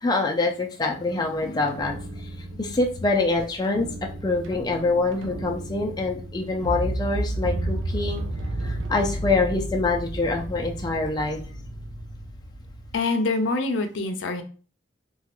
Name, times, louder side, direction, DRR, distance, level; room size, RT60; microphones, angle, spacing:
voice 1, 0.0-2.0 2.6-3.9 4.2-8.2 8.6-11.4, left 3 dB, 20° left, 1 dB, 0.4 m, -25 dB
sound 1, 1.7-13.0, right 1 dB, 90° right, 0.5 m, -32 dB
voice 2, 12.9-14.4, left 3 dB, 90° left, 6 dB, 0.5 m, -25 dB
3.0 x 2.3 x 2.9 m, 0.38 s
head